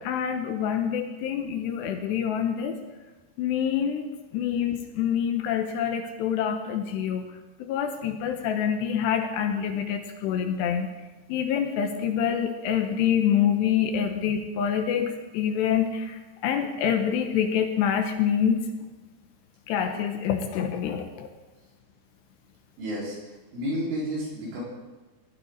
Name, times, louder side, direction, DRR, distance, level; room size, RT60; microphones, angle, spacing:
voice 1, 0.0-2.8 3.4-4.1 4.3-7.2 7.6-10.9 11.3-18.6 19.7-21.3, left 8 dB, 75° left, 5 dB, 2.8 m, -26 dB
voice 2, 22.8-23.2 23.5-24.6, equal, 85° right, -6 dB, 7.3 m, -30 dB
19.5 x 12.0 x 4.0 m, 1.2 s
omnidirectional pair, 5.4 m